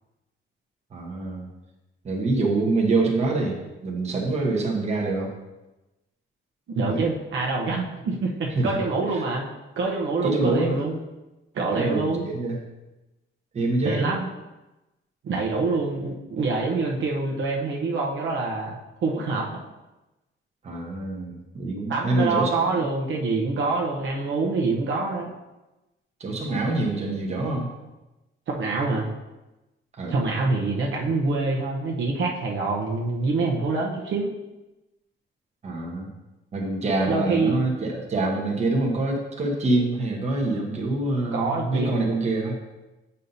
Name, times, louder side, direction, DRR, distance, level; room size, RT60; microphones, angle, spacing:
voice 1, 0.9-1.5 2.0-5.3 6.9-7.0 8.5-8.8 9.1-9.2 10.2-10.8 11.7-12.6 13.5-14.1 20.6-22.8 26.2-27.7 30.0-30.1 35.6-36.1 36.5-42.6, right 2 dB, 30° right, -1 dB, 1.1 m, -25 dB
voice 2, 6.7-9.5 9.8-11.0 11.5-12.2 13.8-14.3 15.2-18.8 19.0-19.5 21.9-25.3 28.5-29.1 30.1-34.3 37.1-37.6 41.3-42.1, right 3 dB, 65° right, -2 dB, 0.9 m, -25 dB
8.2 x 5.5 x 2.7 m, 1.0 s
wide cardioid pair, 175°, 21 cm